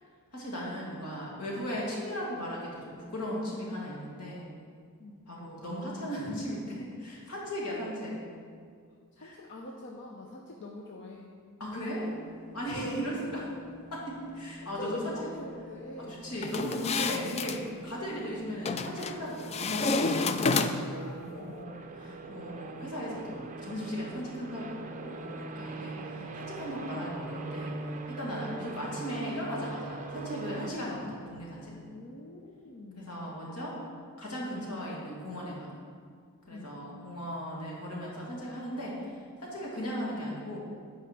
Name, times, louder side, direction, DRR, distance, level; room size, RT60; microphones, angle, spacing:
voice 1, 0.3-4.5 5.3-8.2 9.2-9.3 11.6-12.1 12.5-13.5 13.9-15.3 16.2-17.6 17.8-27.7 28.1-31.7 33.0-33.7 34.2-35.7 36.5-38.9 39.4-40.6, equal, 85° left, -4 dB, 2.3 m, -37 dB
voice 2, 9.1-11.3 12.6-13.0 14.7-16.2 20.7-21.8 25.5-26.4 30.7-30.8 31.9-33.2 36.5-36.7, left 2 dB, 55° left, -1 dB, 0.7 m, -45 dB
sound 1, 12.0-30.7, right 3 dB, 35° right, 0.6 m, -43 dB
sound 2, 16.4-17.6 18.7-19.2 19.5-21.0, left 4 dB, 30° left, 0.3 m, -29 dB
9.3 x 4.7 x 6.0 m, 2.1 s
head